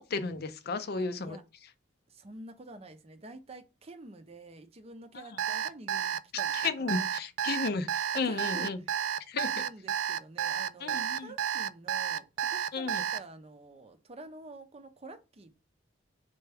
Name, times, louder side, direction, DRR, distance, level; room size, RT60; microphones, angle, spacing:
voice 1, 0.0-1.4 6.6-8.8 9.3-9.5 10.8-11.3 12.7-13.0, left 4 dB, 55° left, 0.5 m, -33 dB
voice 2, 0.9-1.4 2.1-7.1 8.1-9.0 9.5-15.6, right 2 dB, 35° right, 0.6 m, -49 dB
Alarm, 5.4-13.2, right 9 dB, 80° right, 0.3 m, -31 dB
4.4 x 3.4 x 3.4 m
head